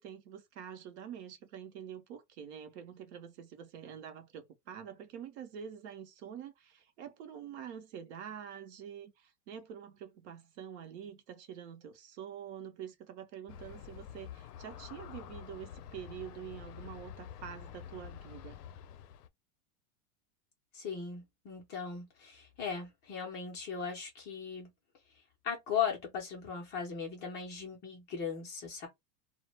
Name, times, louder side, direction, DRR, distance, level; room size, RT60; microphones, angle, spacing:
voice 1, 0.0-18.6, right 8 dB, 45° right, 0.6 m, -46 dB
Aircraft, 13.5-19.3, left 9 dB, 70° left, 0.6 m, -48 dB
voice 2, 20.7-24.7 25.4-28.9, left 7 dB, 20° left, 0.5 m, -38 dB
2.1 x 2.0 x 3.2 m
supercardioid pair, 140°, 48 cm